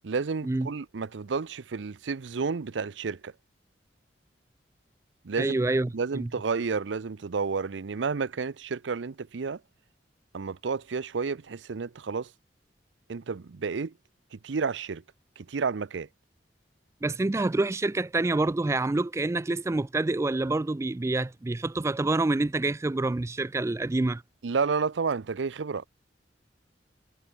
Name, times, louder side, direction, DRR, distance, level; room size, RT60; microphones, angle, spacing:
voice 1, 0.0-3.3 5.2-5.6 5.9-9.6 10.3-12.3 13.1-13.9 14.3-15.0 15.4-16.1 24.4-25.9, right 5 dB, 90° right, 0.6 m, -31 dB
voice 2, 5.4-6.3 17.0-24.2, right 2 dB, 15° right, 0.3 m, -27 dB
head